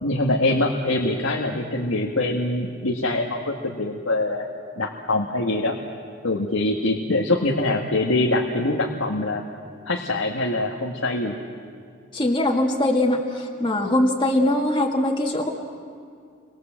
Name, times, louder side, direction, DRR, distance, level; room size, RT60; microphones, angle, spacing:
voice 1, 0.0-4.5 4.8-5.8 6.2-9.4 9.9-11.3, left 2 dB, 90° left, 1 dB, 1.8 m, -24 dB
voice 2, 12.1-15.5, left 1 dB, 25° left, -1 dB, 2.1 m, -22 dB
29.5 x 24.0 x 7.6 m, 2.3 s
head